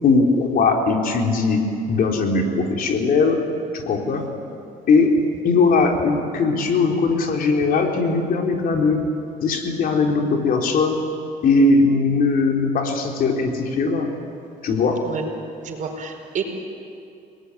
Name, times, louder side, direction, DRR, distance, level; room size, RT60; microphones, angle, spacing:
voice 1, 0.0-1.6 1.9-3.4 3.7-4.3 4.9-9.0 9.4-11.0 11.4-14.1 14.6-15.1, left 3 dB, 60° left, 2 dB, 3.8 m, -19 dB
voice 2, 15.6-16.4, right 6 dB, 50° right, 4 dB, 4.8 m, -29 dB
30.0 x 19.5 x 9.8 m, 2.6 s
cardioid pair, 110°, 17 cm